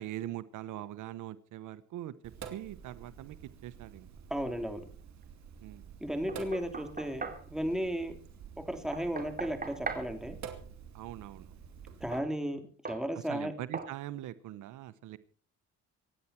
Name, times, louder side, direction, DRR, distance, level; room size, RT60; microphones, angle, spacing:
voice 1, 0.0-2.1 2.5-3.4 3.6-4.1 5.6-6.0 10.9-11.5 13.3-15.2, right 13 dB, 85° right, 16 dB, 0.9 m, -42 dB
Sink (filling or washing), 2.2-12.2, right 7 dB, 65° right, 2.7 m, -49 dB
voice 2, 4.3-4.8 6.0-8.1 8.7-10.4 12.0-13.5, equal, ahead, 6 dB, 3.3 m, -34 dB
Knock, 6.3-7.5 8.9-10.1 12.1-12.3 12.9-13.1 13.7-14.0, right 4 dB, 30° right, 2.8 m, -39 dB
26.0 x 9.9 x 4.4 m, 0.40 s
cardioid pair, 90°, 30 cm